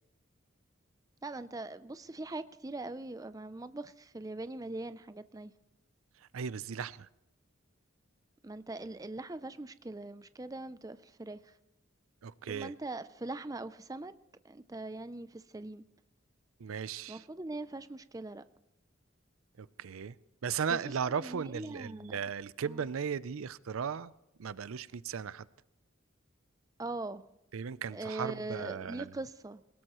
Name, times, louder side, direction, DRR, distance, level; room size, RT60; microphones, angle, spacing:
voice 1, 1.2-5.5 8.4-11.5 12.5-14.1 14.4-15.8 17.1-18.4 20.7-20.8 21.2-22.2 22.7-22.8 26.8-27.3 27.9-29.6, right 2 dB, 15° right, 13 dB, 0.4 m, -41 dB
voice 2, 6.1-7.1 12.2-12.7 16.6-17.3 19.6-20.2 20.4-24.1 24.4-25.5 27.5-29.1, right 6 dB, 85° right, 18 dB, 0.5 m, -36 dB
21.5 x 19.0 x 3.0 m, 0.86 s
head